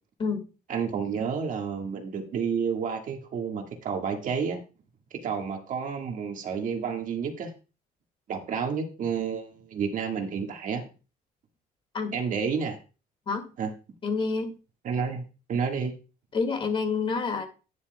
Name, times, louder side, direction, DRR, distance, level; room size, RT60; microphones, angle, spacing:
voice 1, 0.7-4.6 5.2-7.5 8.3-10.8 12.1-12.8 13.6-13.7 14.8-16.0, right 6 dB, 55° right, 4 dB, 1.6 m, -30 dB
voice 2, 14.0-14.5 16.3-17.5, left 4 dB, 30° left, 6 dB, 2.0 m, -28 dB
11.0 x 9.8 x 2.2 m, 0.33 s
cardioid pair, 150°, 16 cm